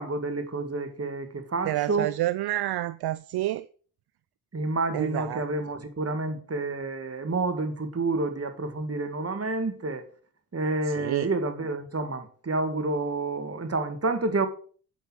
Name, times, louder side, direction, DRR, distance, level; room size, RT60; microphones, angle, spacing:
voice 1, 0.0-2.1 4.5-10.0 10.5-14.5, right 3 dB, 35° right, 1.9 m, -29 dB
voice 2, 1.6-3.6 4.9-5.4 10.9-11.3, right 15 dB, 65° right, 0.5 m, -29 dB
8.3 x 5.8 x 5.9 m
supercardioid pair, 55°, 42 cm